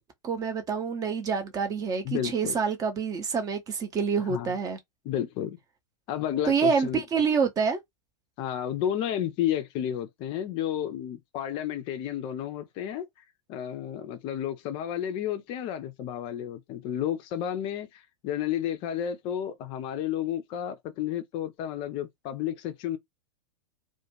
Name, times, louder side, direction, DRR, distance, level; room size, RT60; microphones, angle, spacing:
voice 1, 0.2-4.8 6.5-7.8, right 5 dB, 20° right, 0.6 m, -27 dB
voice 2, 2.0-2.6 4.3-4.5 5.0-5.6 6.1-7.0 8.4-13.0 13.5-23.0, left 10 dB, 35° left, 0.4 m, -31 dB
2.3 x 2.2 x 3.0 m
figure-of-eight pair, 95°, 16 cm